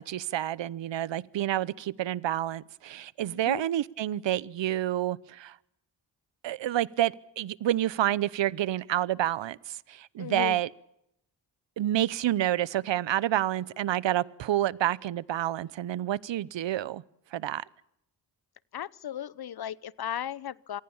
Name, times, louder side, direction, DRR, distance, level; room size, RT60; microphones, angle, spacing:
voice 1, 0.0-5.6 6.4-10.7 11.8-17.0 17.3-17.6, right 13 dB, 80° right, 22 dB, 0.9 m, -29 dB
voice 2, 3.3-3.6 10.2-10.6 18.7-20.8, left 10 dB, 55° left, 22 dB, 0.8 m, -36 dB
26.5 x 19.5 x 7.2 m, 0.78 s
cardioid pair, 75°, 44 cm